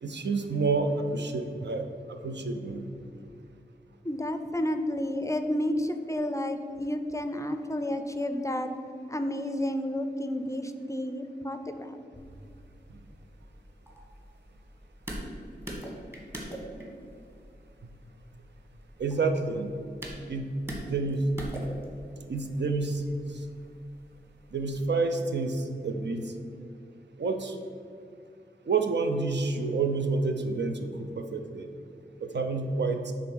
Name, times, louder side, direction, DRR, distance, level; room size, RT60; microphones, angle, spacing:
voice 1, 0.0-2.8 19.0-19.7 20.3-20.5 20.8-21.2 22.3-23.0 24.5-26.3 27.2-27.6 28.7-31.7 32.2-33.1, right 3 dB, 80° right, 6 dB, 0.6 m, -29 dB
voice 2, 4.0-8.7 9.1-12.0, left 1 dB, 15° left, 7 dB, 0.4 m, -31 dB
sound 1, 12.1-24.9, equal, 15° right, 1.4 m, -44 dB
6.9 x 3.7 x 6.2 m, 2.4 s
wide cardioid pair, 95°, 18 cm